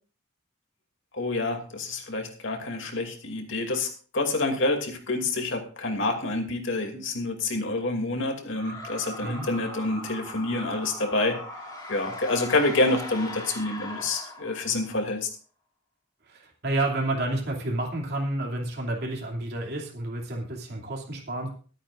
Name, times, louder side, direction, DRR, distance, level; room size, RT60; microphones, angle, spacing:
voice 1, 1.1-11.4 11.9-15.3, left 2 dB, 70° left, 3 dB, 2.6 m, -28 dB
sound 1, 8.5-15.0, left 1 dB, 20° left, 2.8 m, -39 dB
voice 2, 16.3-21.5, right 2 dB, 55° right, -1 dB, 2.8 m, -30 dB
24.5 x 8.9 x 2.5 m, 0.40 s
head